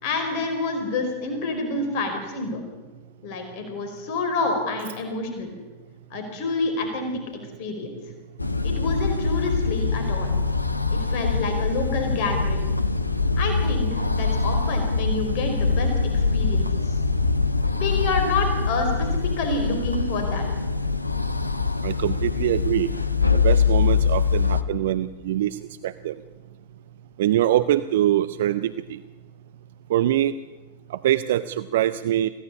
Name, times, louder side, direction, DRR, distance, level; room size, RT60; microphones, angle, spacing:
voice 1, 0.0-2.6 3.2-5.5 6.1-7.2 7.6-8.0 8.6-10.3 10.9-12.7 13.4-17.0 17.7-20.5, left 3 dB, 45° left, 5 dB, 4.8 m, -28 dB
sound 1, 8.4-24.6, left 4 dB, 85° left, 1.0 m, -23 dB
voice 2, 21.8-22.9 23.3-26.2 27.2-29.0 29.9-30.3 30.9-32.3, right 12 dB, 55° right, 13 dB, 0.7 m, -23 dB
24.5 x 17.0 x 9.9 m, 1.3 s
figure-of-eight pair, 90°, 0 cm